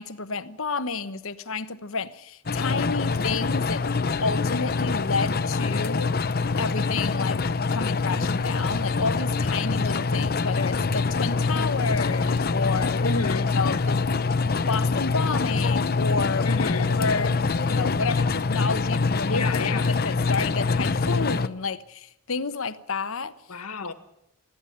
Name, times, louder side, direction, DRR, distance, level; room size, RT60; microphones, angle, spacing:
voice 1, 0.0-3.9 4.2-6.1 6.6-7.4 7.7-13.0 13.5-14.1 14.4-16.5 16.9-23.3, left 4 dB, 65° left, 1.1 m, -30 dB
sound 1, 2.5-21.5, left 4 dB, 45° left, 0.7 m, -25 dB
voice 2, 13.0-13.5 16.4-16.9 19.3-20.0 23.5-23.9, left 3 dB, 85° left, 1.7 m, -30 dB
sound 2, 14.6-15.1 15.5-15.6 16.1-19.0, equal, 5° right, 3.0 m, -40 dB
20.5 x 14.5 x 10.0 m
head